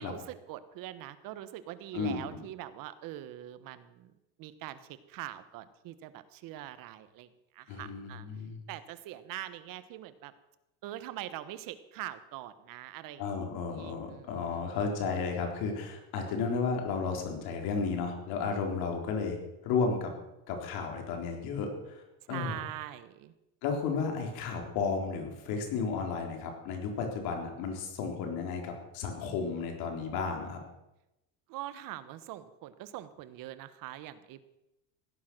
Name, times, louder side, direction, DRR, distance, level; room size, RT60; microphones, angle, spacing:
voice 1, 0.0-4.1 4.4-7.3 7.5-8.2 8.7-10.3 10.8-14.6 22.3-23.3 31.5-34.4, right 13 dB, 55° right, 13 dB, 1.3 m, -43 dB
voice 2, 1.9-2.4 7.7-8.6 13.2-19.4 19.6-20.1 20.5-22.0 22.3-22.6 23.6-30.6, left 5 dB, 65° left, 3 dB, 4.1 m, -33 dB
16.5 x 10.5 x 6.2 m, 0.94 s
supercardioid pair, 130°, 40 cm